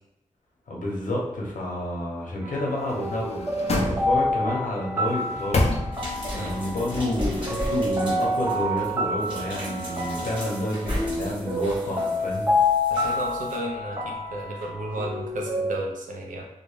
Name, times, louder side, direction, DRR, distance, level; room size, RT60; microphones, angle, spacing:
voice 1, 0.7-3.4 3.9-5.6 6.3-12.5, left 1 dB, 80° left, -3 dB, 0.7 m, -29 dB
sound 1, 2.4-15.7, left 1 dB, 15° right, 0.5 m, -28 dB
sound 2, 2.8-4.5 5.0-6.3 6.7-6.8, left 2 dB, 55° left, 0.4 m, -28 dB
sound 3, 5.9-13.6 14.6-14.7, equal, 40° right, 1.2 m, -36 dB
voice 2, 12.9-16.4, right 1 dB, 85° right, 0 dB, 0.5 m, -33 dB
2.6 x 2.1 x 3.1 m, 0.93 s
wide cardioid pair, 95°, 13 cm